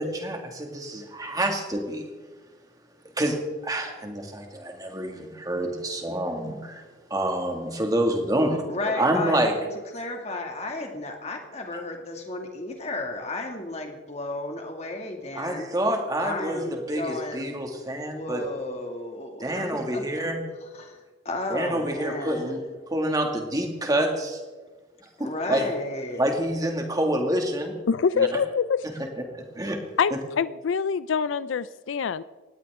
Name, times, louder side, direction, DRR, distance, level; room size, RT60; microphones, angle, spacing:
voice 1, 0.0-2.1 3.2-3.4 3.6-6.8 7.1-8.6 9.0-9.5 15.4-18.4 19.4-20.4 21.5-22.6 22.9-24.4 25.2-25.7 26.2-27.7 28.2-28.3 28.8-28.9 29.3-29.8, right 1 dB, 20° right, 3 dB, 2.1 m, -27 dB
voice 2, 8.7-9.6 9.9-15.7 16.2-20.0 20.7-21.0 21.2-22.6 25.2-26.2, left 2 dB, 35° left, 2 dB, 2.3 m, -33 dB
voice 3, 27.9-28.9 30.0-32.2, left 6 dB, 75° left, 16 dB, 0.4 m, -25 dB
18.5 x 16.0 x 3.7 m, 1.3 s
head